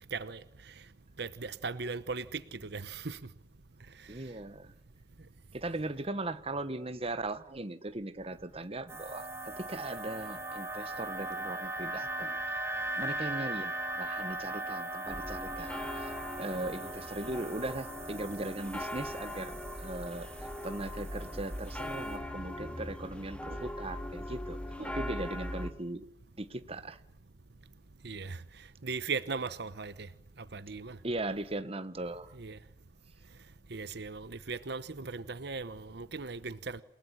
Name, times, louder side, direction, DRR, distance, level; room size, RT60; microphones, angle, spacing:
voice 1, 1.2-3.2 28.0-28.4 28.8-30.1 30.5-31.0 32.4-32.6 33.7-36.8, right 4 dB, 65° right, 1.0 m, -38 dB
voice 2, 4.1-4.7 5.5-12.6 13.0-26.1 26.4-27.0 31.0-32.4, right 2 dB, 35° right, 1.3 m, -39 dB
sound 1, 8.9-22.2, right 1 dB, 15° right, 3.5 m, -39 dB
sound 2, 15.1-25.7, left 1 dB, 5° left, 2.2 m, -40 dB
29.0 x 18.5 x 9.9 m
head